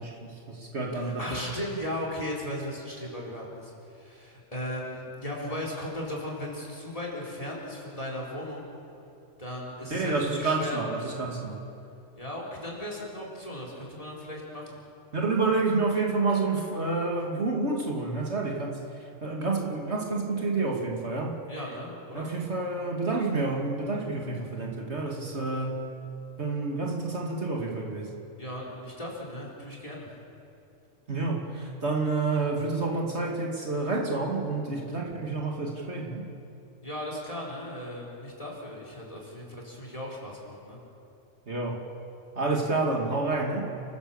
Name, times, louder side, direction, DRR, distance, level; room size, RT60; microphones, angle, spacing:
voice 1, 0.0-1.4 9.9-11.6 15.1-21.4 22.1-25.8 26.4-28.1 31.1-36.3 41.5-41.8 42.4-43.7, right 3 dB, 60° right, -1 dB, 2.7 m, -29 dB
voice 2, 0.9-8.7 9.4-10.8 12.2-14.7 21.5-22.3 28.4-30.1 36.8-40.8, left 1 dB, 30° left, -2 dB, 4.4 m, -37 dB
29.5 x 15.5 x 7.2 m, 2.8 s
omnidirectional pair, 1.3 m